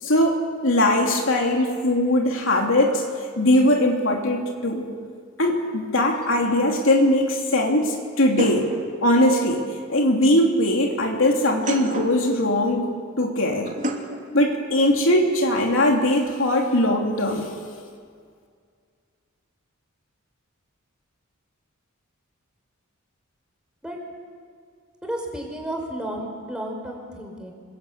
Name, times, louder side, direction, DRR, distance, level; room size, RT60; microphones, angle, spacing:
voice 1, 0.0-3.0 3.4-4.9 5.4-8.7 9.0-9.6 9.9-12.9 13.2-13.7 14.3-17.5, left 1 dB, 70° left, 1 dB, 3.1 m, -20 dB
sound 1, 6.2-6.3 8.4-9.4 11.4-12.2 13.6-14.2, right 1 dB, 40° right, 2.8 m, -30 dB
voice 2, 25.0-27.5, right 1 dB, 5° right, 1 dB, 5.1 m, -32 dB
26.5 x 22.0 x 8.8 m, 2.1 s
head